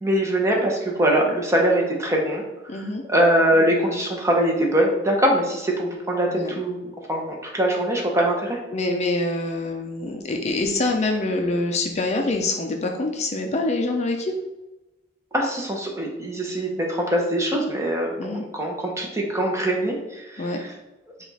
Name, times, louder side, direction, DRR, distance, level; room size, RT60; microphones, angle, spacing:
voice 1, 0.0-2.4 3.1-8.6 15.3-20.7, right 1 dB, 15° right, -1 dB, 0.8 m, -22 dB
voice 2, 2.7-3.0 6.3-6.5 8.7-14.3 18.2-18.4 20.4-20.6, left 2 dB, 35° left, 3 dB, 0.4 m, -25 dB
5.0 x 2.4 x 4.0 m, 1.0 s
head